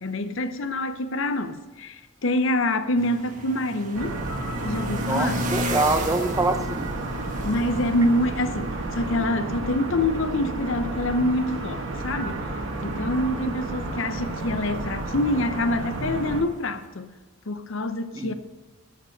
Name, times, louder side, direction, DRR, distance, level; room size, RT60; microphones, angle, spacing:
voice 1, 0.0-4.2 4.6-5.5 7.4-12.4 12.8-17.1 17.5-18.3, left 1 dB, 60° left, 0.7 m, -26 dB
sound 1, 3.0-16.9, right 1 dB, 35° right, 1.3 m, -36 dB
sound 2, 3.9-16.4, right 2 dB, 60° right, 1.5 m, -31 dB
voice 2, 5.0-6.9 18.1-18.3, right 2 dB, 15° right, 0.6 m, -25 dB
12.5 x 6.4 x 6.6 m
head